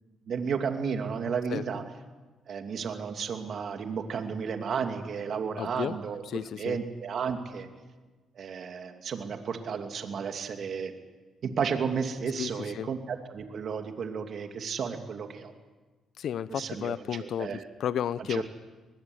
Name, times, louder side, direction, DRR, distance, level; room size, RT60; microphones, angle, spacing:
voice 1, 0.3-1.8 2.5-6.2 6.5-7.7 8.4-10.9 11.4-15.5 16.5-17.7 18.3-18.4, right 6 dB, 60° right, 6 dB, 2.6 m, -33 dB
voice 2, 5.6-6.0 6.3-6.8 12.4-12.9 16.2-18.4, left 9 dB, 65° left, 18 dB, 0.7 m, -33 dB
23.5 x 20.5 x 8.0 m, 1.3 s
cardioid pair, 90°, 0 cm